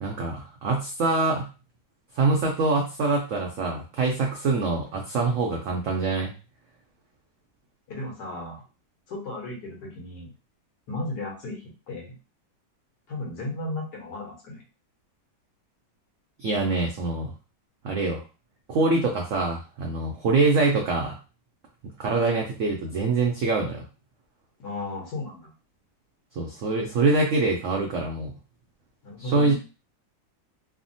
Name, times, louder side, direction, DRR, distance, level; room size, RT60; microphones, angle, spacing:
voice 1, 0.0-1.5 2.1-6.3 16.4-17.3 17.8-18.2 18.7-21.1 22.0-23.8 26.4-28.3 29.2-29.5, right 3 dB, 85° right, 0 dB, 0.7 m, -24 dB
voice 2, 7.9-8.6 9.1-10.3 10.9-12.1 13.1-14.6 24.6-25.5 29.0-29.5, left 2 dB, 65° left, -1 dB, 1.5 m, -35 dB
3.3 x 2.1 x 2.6 m, 0.33 s
omnidirectional pair, 2.0 m